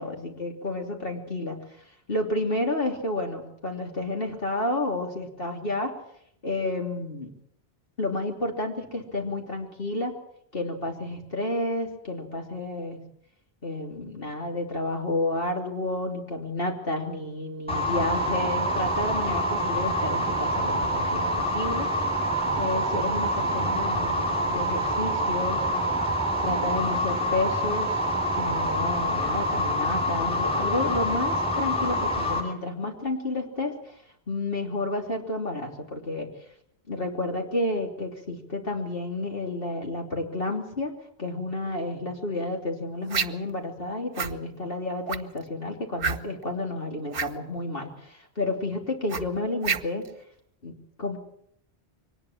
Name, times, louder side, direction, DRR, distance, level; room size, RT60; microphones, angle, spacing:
voice 1, 0.0-1.6 2.1-5.9 6.4-7.3 8.0-10.1 10.5-13.0 13.6-21.9 22.6-25.7 26.4-27.9 28.4-33.9 34.3-36.3 36.9-40.9 41.2-50.1 50.6-51.2, left 2 dB, 60° left, 1 dB, 3.4 m, -30 dB
sound 1, 17.7-32.4, equal, 5° left, 6.7 m, -26 dB
sound 2, 43.1-43.5 44.1-44.4 45.1-45.4 46.0-46.4 47.1-47.3 49.1-50.1, right 5 dB, 60° right, 1.2 m, -28 dB
23.5 x 19.5 x 7.3 m, 0.71 s
omnidirectional pair, 1.1 m